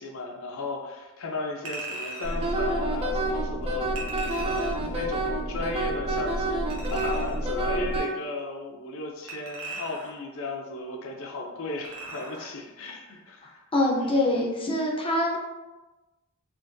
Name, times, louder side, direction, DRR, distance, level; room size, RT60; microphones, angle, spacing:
voice 1, 0.0-4.1 4.4-13.6 14.0-14.3, left 2 dB, 65° left, 1 dB, 0.6 m, -35 dB
Chink clink, 1.7-2.4 4.0-4.9 6.7-7.5 9.3-10.3 11.8-12.5 12.9-13.0, right 2 dB, 70° right, 0.7 m, -39 dB
sound 1, 2.2-8.0, equal, 50° right, 1.2 m, -32 dB
Wind instrument woodwind instrument, 2.4-8.1, right 2 dB, 25° right, 0.4 m, -29 dB
voice 2, 13.4-15.4, left 1 dB, 25° left, -1 dB, 0.5 m, -25 dB
3.7 x 2.6 x 2.6 m, 1.1 s
head